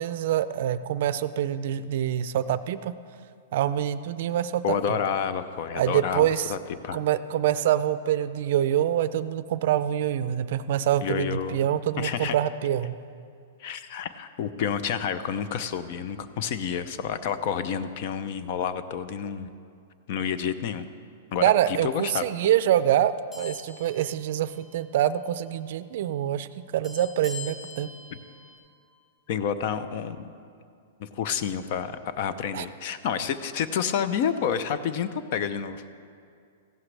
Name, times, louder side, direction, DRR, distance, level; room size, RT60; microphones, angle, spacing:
voice 1, 0.0-2.9 3.5-5.0 5.7-6.5 6.9-13.0 21.4-26.5 26.7-27.9 32.5-32.7, right 11 dB, 60° right, 14 dB, 0.4 m, -25 dB
voice 2, 4.6-6.6 6.8-7.0 11.0-11.6 12.0-12.4 13.6-19.5 20.1-20.9 21.3-22.3 29.3-30.3 31.0-35.8, left 7 dB, 50° left, 12 dB, 0.6 m, -29 dB
sound 1, 23.3-25.0 25.3-25.5 26.8-28.6, left 4 dB, 25° left, 3.5 m, -44 dB
15.5 x 11.0 x 3.3 m, 2.3 s
hypercardioid pair, 145°, 0 cm